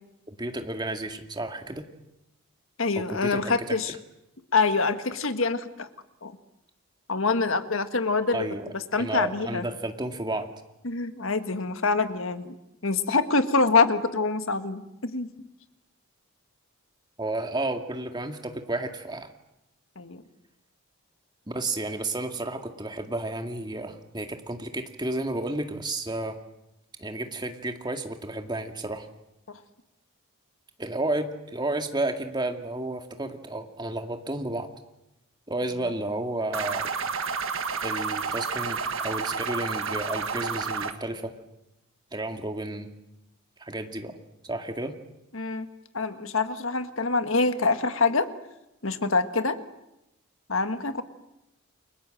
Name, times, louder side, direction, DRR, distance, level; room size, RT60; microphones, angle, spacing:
voice 1, 0.3-1.9 3.1-3.8 8.3-8.7 9.0-10.5 17.2-19.3 21.5-26.4 27.0-29.1 30.8-34.7 35.5-36.9 37.8-41.3 42.1-42.9 43.6-44.2 44.4-44.9, right 2 dB, 20° right, 5 dB, 2.2 m, -32 dB
voice 2, 2.8-3.9 4.5-5.9 6.2-6.4 7.1-8.5 8.7-9.7 10.8-12.6 12.8-15.3 20.0-20.2 29.5-29.6 45.3-45.7 45.9-48.3 48.8-49.6 50.5-51.0, left 4 dB, 60° left, 10 dB, 1.7 m, -25 dB
sound 1, 36.5-40.9, right 5 dB, 60° right, 1.8 m, -30 dB
30.0 x 23.5 x 7.8 m, 0.90 s
head